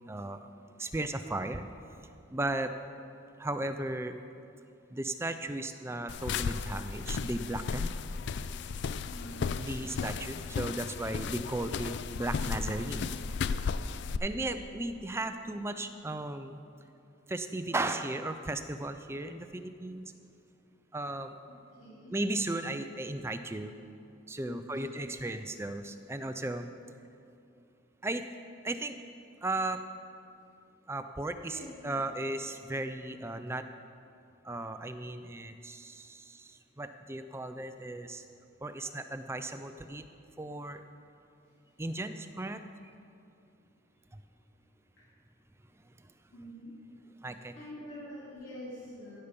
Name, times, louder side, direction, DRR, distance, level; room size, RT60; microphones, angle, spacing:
voice 1, 0.1-0.5 0.8-1.7 2.3-2.8 3.4-4.2 4.9-8.0 9.6-13.1 14.2-16.6 17.3-20.1 20.9-21.4 22.1-23.7 24.3-26.7 28.0-28.3 28.6-29.0 29.4-29.9 30.9-33.7 34.4-38.2 38.6-40.0 40.4-40.8 41.8-42.6 44.1-44.2 45.8-46.1 47.2-47.6, right 2 dB, 10° right, 8 dB, 0.4 m, -36 dB
sound 1, 6.1-14.2, left 5 dB, 55° left, 0.3 m, -35 dB
voice 2, 9.1-9.5 13.9-14.5 21.8-22.1 24.4-24.9 31.4-32.0 41.9-42.0 45.0-45.1 46.3-46.7 47.6-49.2, equal, 75° left, -8 dB, 2.6 m, -46 dB
16.5 x 6.8 x 5.2 m, 2.6 s
head